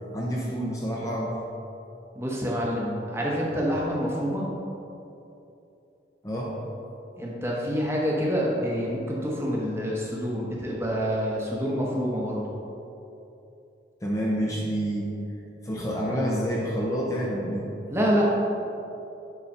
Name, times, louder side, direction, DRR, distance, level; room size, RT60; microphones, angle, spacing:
voice 1, 0.1-1.4 6.2-6.6 14.0-15.2 15.6-17.7, equal, 20° left, -4 dB, 0.7 m, -28 dB
voice 2, 2.1-4.5 7.2-12.4 17.9-18.2, equal, 15° right, -4 dB, 1.0 m, -27 dB
7.1 x 3.9 x 5.4 m, 2.8 s
head